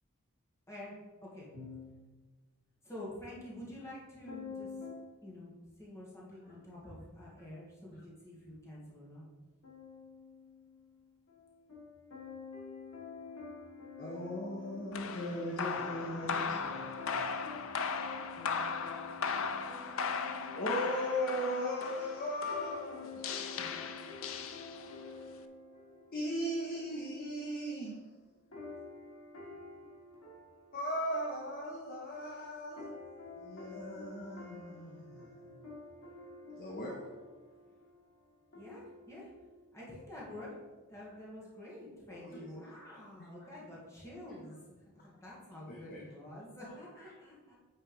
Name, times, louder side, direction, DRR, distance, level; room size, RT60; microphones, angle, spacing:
voice 1, 1.5-2.0 4.3-5.1 9.6-21.5 22.5-26.4 28.5-30.8 31.1-31.2 31.9-32.3 32.8-39.8, left 4 dB, 85° left, 2.8 m, -49 dB
voice 2, 2.8-4.7 5.2-5.5 5.8-9.2 38.6-39.3 39.7-40.5 40.9-47.6, left 1 dB, 15° left, 2.3 m, -48 dB
voice 3, 14.0-17.3 20.5-23.6 26.1-28.0 30.7-32.9 33.4-35.5 36.6-37.1 42.1-42.7 43.2-43.3 45.7-46.0 47.0-47.1, equal, 40° left, 1.2 m, -38 dB
sound 1, 14.9-25.1, left 5 dB, 65° left, 0.6 m, -38 dB
9.2 x 4.3 x 5.5 m
head